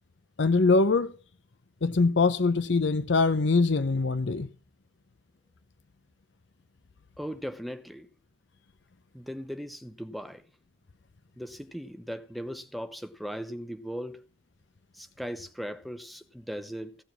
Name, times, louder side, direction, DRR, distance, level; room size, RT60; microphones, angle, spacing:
voice 1, 0.4-1.1 1.8-4.5, left 3 dB, 65° left, 0.6 m, -23 dB
voice 2, 7.2-8.1 9.1-10.4 11.4-14.2 14.9-17.0, equal, ahead, 0.8 m, -38 dB
16.5 x 7.1 x 6.0 m
head